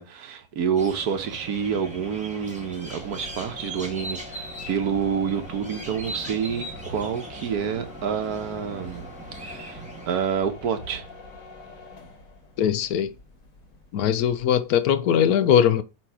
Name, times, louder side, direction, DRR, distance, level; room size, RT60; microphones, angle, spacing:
voice 1, 0.0-9.1 9.4-11.0, right 7 dB, 85° right, 1.5 m, -28 dB
bird landing, 0.8-10.2, right 2 dB, 5° right, 1.4 m, -39 dB
sound 1, 2.8-14.7, left 2 dB, 65° left, 1.8 m, -44 dB
voice 2, 12.6-13.1 13.9-15.8, left 9 dB, 80° left, 1.2 m, -20 dB
7.6 x 3.2 x 4.6 m
omnidirectional pair, 1.6 m